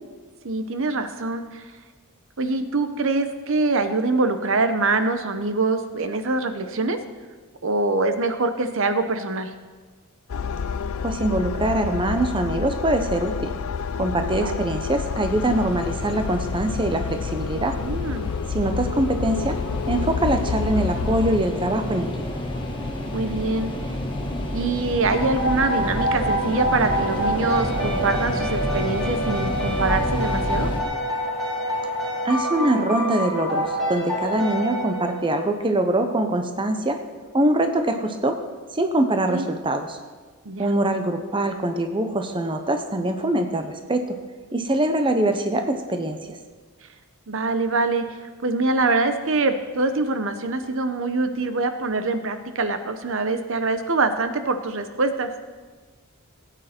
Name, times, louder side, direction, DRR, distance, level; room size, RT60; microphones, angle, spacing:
voice 1, 0.4-1.6 2.4-7.0 7.6-9.5 14.4-14.6 17.8-18.3 23.1-23.7 24.5-30.7 39.3-39.4 40.5-40.7 47.3-48.0 48.4-55.3, right 3 dB, 60° right, 9 dB, 0.8 m, -24 dB
sound 1, 10.3-21.4, left 6 dB, 70° left, 0.4 m, -29 dB
voice 2, 11.0-13.5 14.0-17.8 18.5-19.6 19.9-22.4 32.2-37.0 37.3-38.4 38.7-40.0 40.6-44.2 44.5-46.4, right 1 dB, 20° right, 6 dB, 0.8 m, -23 dB
sound 2, 15.3-30.8, left 1 dB, 20° left, 1.4 m, -30 dB
sound 3, 25.1-35.5, right 1 dB, ahead, 3.6 m, -27 dB
17.0 x 9.1 x 4.4 m, 1.4 s
head